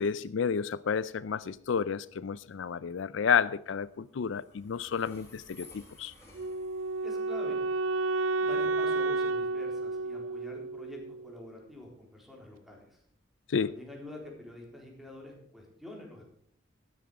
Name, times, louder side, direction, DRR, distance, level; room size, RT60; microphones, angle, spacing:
voice 1, 0.0-6.1 13.5-13.8, left 6 dB, 75° left, 0.4 m, -31 dB
Train, 1.6-15.4, left 2 dB, 15° left, 5.3 m, -59 dB
Wind instrument woodwind instrument, 6.4-11.4, right 3 dB, 85° right, 0.5 m, -31 dB
voice 2, 7.0-7.6 8.4-13.0 13.6-16.2, left 1 dB, ahead, 3.9 m, -46 dB
13.0 x 11.0 x 4.9 m
head